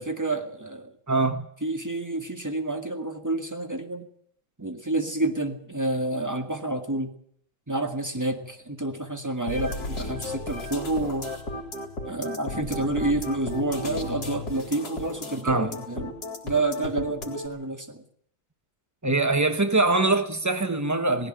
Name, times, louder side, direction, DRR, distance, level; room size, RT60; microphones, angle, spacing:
voice 1, 0.0-0.9 1.6-4.1 4.6-7.1 7.7-11.3 12.0-16.2 16.4-18.0, right 2 dB, 10° right, 1.7 m, -29 dB
voice 2, 1.1-1.5 15.4-15.7 19.0-21.3, right 2 dB, 30° right, 0.3 m, -23 dB
sound 1, 9.5-17.5, left 1 dB, 45° left, 3.9 m, -34 dB
19.0 x 15.5 x 9.0 m
omnidirectional pair, 2.3 m